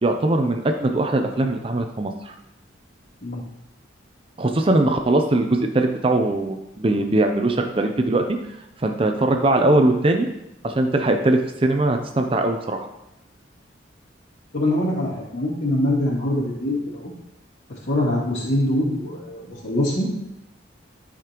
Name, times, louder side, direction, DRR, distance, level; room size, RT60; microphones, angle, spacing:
voice 1, 0.0-2.3 4.4-8.2 8.8-10.3 10.6-12.9, right 2 dB, 30° right, 5 dB, 0.5 m, -21 dB
voice 2, 14.5-17.1 17.9-20.1, left 1 dB, 80° left, -9 dB, 2.5 m, -23 dB
13.0 x 5.0 x 3.0 m, 0.89 s
head